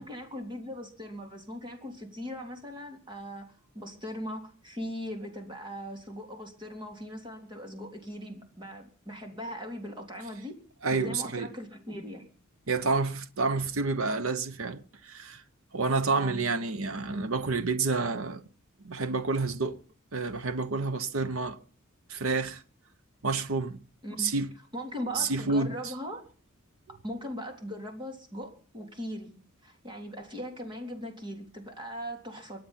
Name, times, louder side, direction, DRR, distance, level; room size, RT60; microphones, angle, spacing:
voice 1, 0.0-3.5 3.8-10.5 10.9-12.3 16.1-16.5 24.0-24.3 24.7-26.3 26.9-32.6, equal, 20° right, 3.5 m, -39 dB
voice 2, 10.8-11.5 12.7-15.4 15.7-18.4 18.8-19.8 20.1-21.6 22.1-22.6 23.2-23.8 24.2-24.5 25.1-25.9, right 3 dB, 70° right, 1.0 m, -29 dB
24.0 x 9.0 x 5.7 m
head